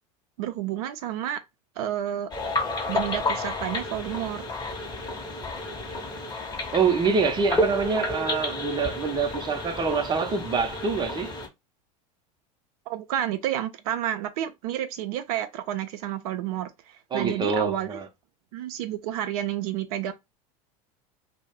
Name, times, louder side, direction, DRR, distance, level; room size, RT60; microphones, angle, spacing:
voice 1, 0.4-1.4 1.8-2.3 2.9-4.4 12.9-18.0 18.5-20.1, right 11 dB, 70° right, 0.4 m, -30 dB
sound 1, 2.3-11.5, left 2 dB, 20° left, 0.8 m, -31 dB
voice 2, 6.7-11.3 17.1-18.1, right 5 dB, 25° right, 0.6 m, -25 dB
2.2 x 2.1 x 3.4 m
hypercardioid pair, 85°, 20 cm